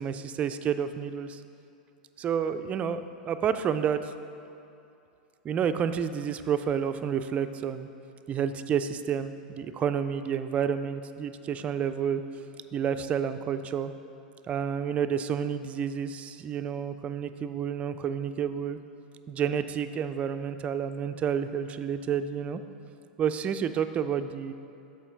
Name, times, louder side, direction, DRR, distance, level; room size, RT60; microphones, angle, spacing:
voice 1, 0.0-1.4 2.2-4.1 5.4-7.9 8.3-12.2 12.7-13.9 14.5-18.8 19.3-22.6 23.2-24.5, right 8 dB, 30° right, 10 dB, 0.3 m, -30 dB
7.0 x 4.4 x 5.1 m, 2.7 s
hypercardioid pair, 100°, 5 cm